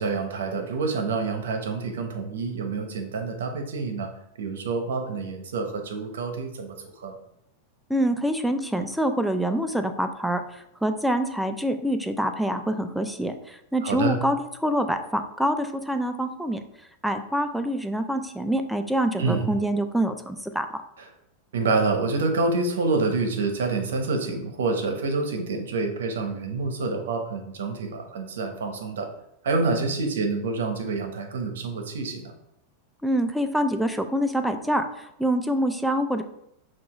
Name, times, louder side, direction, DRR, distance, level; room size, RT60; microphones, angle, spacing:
voice 1, 0.0-4.1 4.4-7.2 13.8-14.2 19.2-19.5 21.0-21.1 21.5-29.1 29.4-32.3, right 3 dB, 85° right, 5 dB, 0.8 m, -27 dB
voice 2, 7.9-16.6 17.0-20.7 33.0-36.2, right 1 dB, ahead, 7 dB, 0.4 m, -26 dB
5.9 x 2.5 x 2.9 m, 0.76 s
hypercardioid pair, 120°, 0 cm